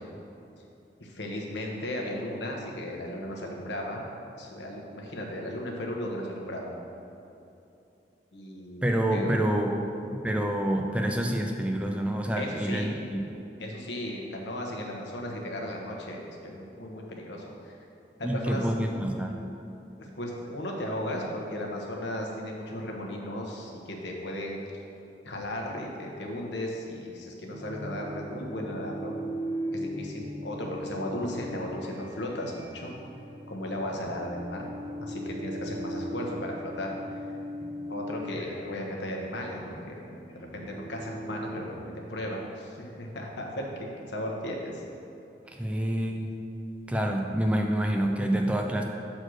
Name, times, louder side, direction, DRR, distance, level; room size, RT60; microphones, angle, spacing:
voice 1, 1.0-4.0 4.3-6.7 8.3-9.5 12.4-12.9 13.6-17.8 18.2-18.7 20.0-24.6 25.2-29.1 29.7-32.9 33.5-34.7 35.0-37.0 37.9-40.1 40.3-41.8 42.1-44.8 47.1-47.2, left 1 dB, 90° left, -1 dB, 1.1 m, -35 dB
voice 2, 8.8-9.8 10.1-13.3 18.2-19.4 45.5-46.3 46.9-48.8, right 1 dB, 5° right, 2 dB, 0.4 m, -27 dB
sound 1, 27.5-42.6, equal, 30° left, 1.1 m, -39 dB
6.3 x 4.3 x 6.3 m, 2.7 s
head